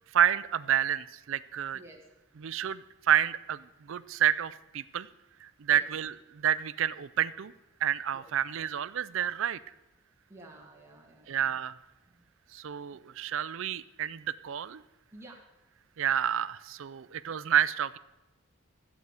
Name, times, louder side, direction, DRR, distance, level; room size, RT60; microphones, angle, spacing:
voice 1, 0.1-1.8 2.4-5.1 5.4-7.5 7.8-9.6 11.3-11.7 12.5-14.8 16.0-18.0, right 9 dB, 60° right, 16 dB, 0.4 m, -29 dB
voice 2, 10.3-11.4 12.1-12.2 15.1-15.4, right 2 dB, 10° right, -2 dB, 1.8 m, -51 dB
14.0 x 8.1 x 4.8 m, 1.0 s
head